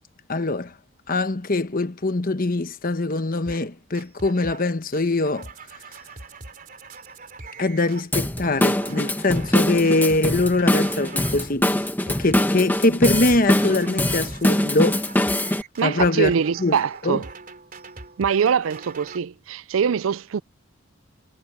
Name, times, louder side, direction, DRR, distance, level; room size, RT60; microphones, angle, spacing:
voice 1, 0.3-0.7 1.1-5.5 7.6-11.7 12.1-15.0 15.8-16.3 16.6-16.8 17.0-17.2, left 2 dB, 45° left, 1.1 m, -22 dB
sound 1, 3.5-3.7 3.9-4.7 4.9-11.5 11.8-12.5 12.8-19.2, right 3 dB, 40° right, 4.0 m, -42 dB
Drum kit / Drum, 8.1-15.6, left 1 dB, 10° left, 1.1 m, -23 dB
voice 2, 15.8-17.3 18.2-20.4, right 7 dB, 75° right, 0.4 m, -23 dB
head